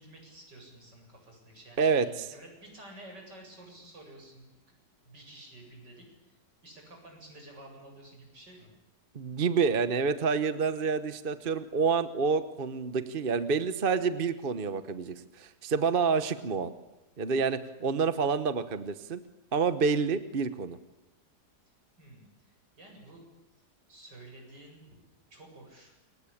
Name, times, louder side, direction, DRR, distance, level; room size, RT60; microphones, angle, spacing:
voice 1, 0.0-4.8 5.0-6.1 6.6-8.7 22.0-23.2 23.9-25.0 25.3-25.9, right 1 dB, 75° right, 1 dB, 8.8 m, -51 dB
voice 2, 1.8-2.1 9.1-16.7 17.2-19.2 19.5-20.8, right 5 dB, 35° right, 12 dB, 1.1 m, -28 dB
28.5 x 23.0 x 8.6 m, 0.99 s
omnidirectional pair, 1.9 m